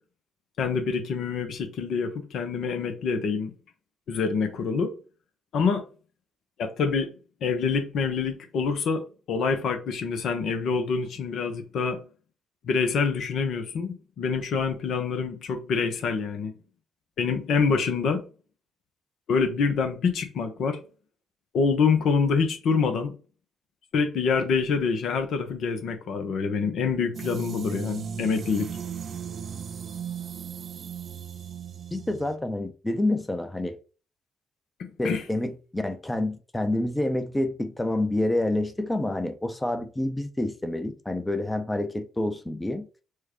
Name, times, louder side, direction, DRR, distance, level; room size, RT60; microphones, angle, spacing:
voice 1, 0.6-3.5 4.1-4.9 5.5-5.8 6.6-7.1 7.4-9.0 9.3-12.0 12.6-16.5 17.2-18.2 19.3-20.8 21.5-23.1 23.9-28.7 35.0-35.2, left 5 dB, 65° left, 0.7 m, -26 dB
sound 1, 27.1-32.4, right 7 dB, 55° right, 0.4 m, -36 dB
voice 2, 31.9-33.8 35.0-42.9, left 1 dB, 15° left, 0.6 m, -28 dB
4.6 x 2.2 x 3.0 m
hypercardioid pair, 45°, 0 cm